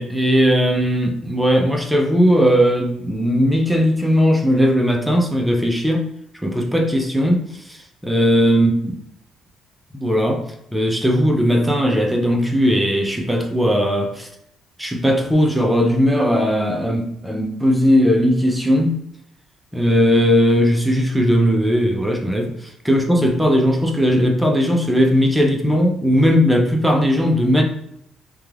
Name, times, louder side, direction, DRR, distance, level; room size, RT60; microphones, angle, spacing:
voice 1, 0.0-6.1 6.4-8.7 9.9-10.4 10.7-14.3 14.8-19.0 19.7-27.6, equal, ahead, 0.4 m, -18 dB
2.3 x 2.2 x 3.2 m
cardioid pair, 155°, 0 cm